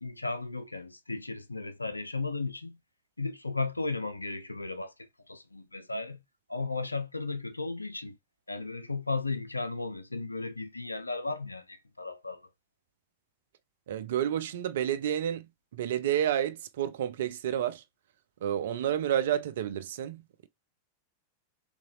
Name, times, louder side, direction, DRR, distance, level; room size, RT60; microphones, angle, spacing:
voice 1, 0.0-2.8 3.2-6.2 6.5-8.2 8.5-12.5, left 3 dB, 85° left, 0.4 m, -35 dB
voice 2, 13.9-17.8 18.4-20.5, right 10 dB, 60° right, 0.4 m, -30 dB
3.8 x 2.8 x 2.6 m
figure-of-eight pair, 90°, 0 cm